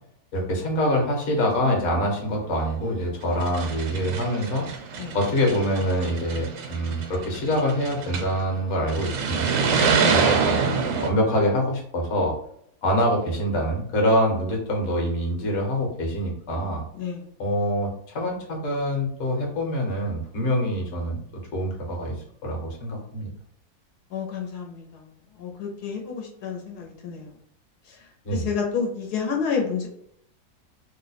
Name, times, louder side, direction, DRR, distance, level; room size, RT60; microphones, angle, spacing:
voice 1, 0.3-4.7 5.1-9.5 10.0-10.7 11.0-12.4 12.8-16.8 17.4-21.2 21.5-22.2 22.4-23.3 28.2-28.5, equal, 50° left, -1 dB, 1.1 m, -25 dB
sound 1, 2.6-2.7 3.3-8.4 8.9-11.1, right 5 dB, 80° right, 1.2 m, -26 dB
voice 2, 24.1-25.1 25.3-27.3 27.9-28.0 28.3-29.9, left 6 dB, 85° left, 1 dB, 1.3 m, -30 dB
3.0 x 2.1 x 4.0 m, 0.69 s
omnidirectional pair, 1.7 m